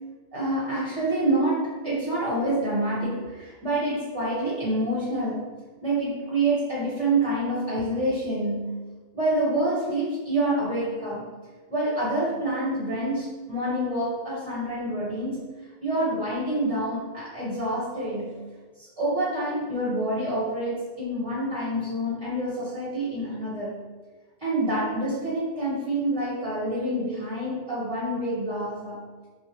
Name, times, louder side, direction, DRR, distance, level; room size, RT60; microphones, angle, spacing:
voice 1, 0.3-5.4 5.8-8.8 9.1-11.3 11.7-15.4 15.8-18.4 18.8-23.7 24.4-29.0, right 1 dB, 25° right, -8 dB, 0.9 m, -27 dB
3.9 x 2.1 x 2.9 m, 1.3 s
omnidirectional pair, 1.2 m